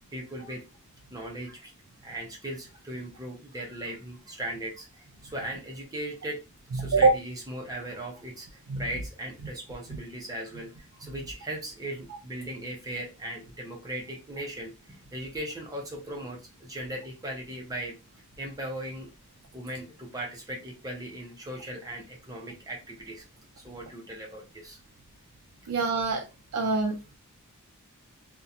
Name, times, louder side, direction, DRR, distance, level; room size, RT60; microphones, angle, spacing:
voice 1, 0.1-0.6 1.1-1.7 2.0-6.4 6.7-18.0 18.4-19.1 19.5-23.2 23.6-24.8, right 1 dB, 15° right, -1 dB, 0.5 m, -38 dB
voice 2, 6.8-7.1 8.7-8.8 25.7-26.2 26.5-27.0, right 3 dB, 90° right, 3 dB, 0.4 m, -23 dB
2.8 x 2.1 x 2.4 m, 0.27 s
head